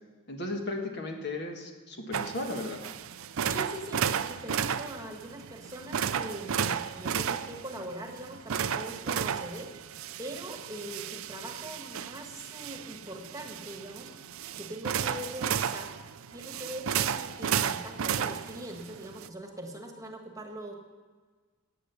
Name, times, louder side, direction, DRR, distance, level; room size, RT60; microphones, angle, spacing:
voice 1, 0.3-2.8, left 2 dB, 50° left, 3 dB, 1.7 m, -35 dB
sound 1, 2.1-19.3, right 8 dB, 70° right, 0.5 m, -33 dB
voice 2, 3.4-9.7 10.2-14.1 14.6-15.9 16.3-20.7, right 1 dB, 15° right, 3 dB, 1.5 m, -42 dB
15.5 x 8.9 x 7.0 m, 1.5 s
head